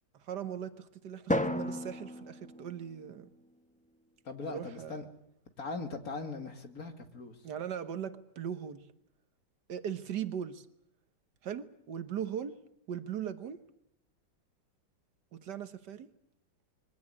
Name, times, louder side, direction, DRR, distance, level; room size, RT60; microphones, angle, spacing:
voice 1, 0.1-3.3 4.4-5.0 7.4-8.9 9.7-10.7 11.4-12.6 12.9-13.6 15.3-16.1, right 9 dB, 70° right, 11 dB, 1.7 m, -39 dB
Drum, 1.3-3.6, left 1 dB, 5° left, 0.8 m, -34 dB
voice 2, 4.2-5.0 5.6-7.4, left 3 dB, 55° left, 7 dB, 2.5 m, -40 dB
23.0 x 17.0 x 9.8 m, 0.78 s
omnidirectional pair, 1.9 m